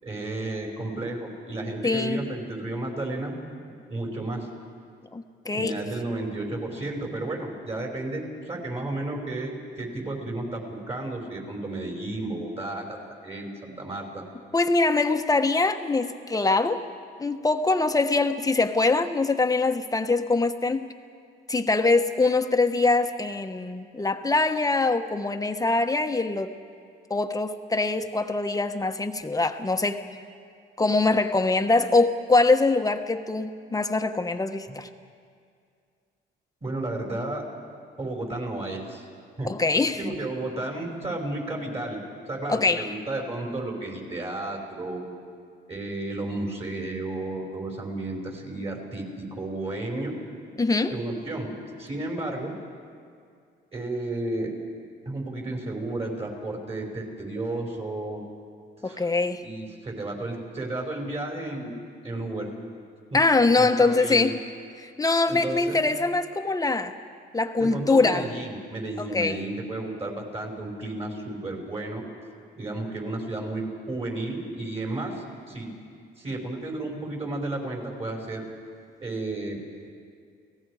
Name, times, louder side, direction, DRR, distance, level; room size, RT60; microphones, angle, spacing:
voice 1, 0.0-3.3 3.9-4.5 5.5-14.2 36.6-37.4 38.0-39.0 39.4-39.5 40.0-42.0 42.3-45.0 45.7-50.1 50.9-51.5 51.8-52.5 53.7-54.5 55.1-58.2 58.8-59.1 59.4-61.7 62.0-62.5 63.5-64.3 65.3-65.8 67.5-72.0 72.6-75.7 76.2-78.4 79.0-79.6, right 2 dB, 30° right, 0 dB, 5.4 m, -32 dB
voice 2, 1.8-2.2 5.1-5.8 14.5-16.8 17.2-20.9 21.5-26.5 27.1-30.0 30.8-34.9 39.4-40.0 42.5-42.9 50.6-50.9 58.8-59.4 63.1-64.4 64.8-66.9 67.3-68.3 69.0-69.4, left 3 dB, 20° left, 7 dB, 1.2 m, -23 dB
29.5 x 18.0 x 5.0 m, 2.2 s
cardioid pair, 90°, 20 cm